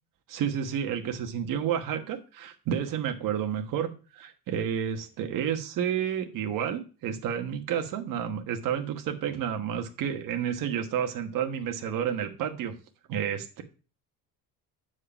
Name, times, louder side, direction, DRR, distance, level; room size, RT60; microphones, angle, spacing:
voice 1, 0.3-12.8 13.1-13.6, right 8 dB, 65° right, 5 dB, 1.3 m, -30 dB
8.7 x 4.8 x 4.4 m, 0.35 s
cardioid pair, 130°, 36 cm